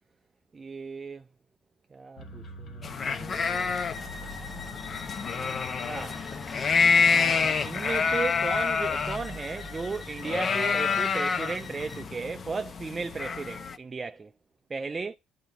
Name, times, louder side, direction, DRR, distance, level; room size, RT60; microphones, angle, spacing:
voice 1, 0.5-1.3 1.9-3.7 5.8-6.2 7.1-14.3 14.7-15.2, right 4 dB, 30° right, 0.3 m, -35 dB
sound 1, 2.2-9.4, left 2 dB, 60° left, 1.9 m, -44 dB
sound 2, 2.8-13.7, left 5 dB, 40° left, 0.7 m, -28 dB
Bowed string instrument, 3.3-12.1, left 5 dB, 15° left, 1.0 m, -44 dB
11.0 x 3.8 x 4.3 m
supercardioid pair, 80°, 0 cm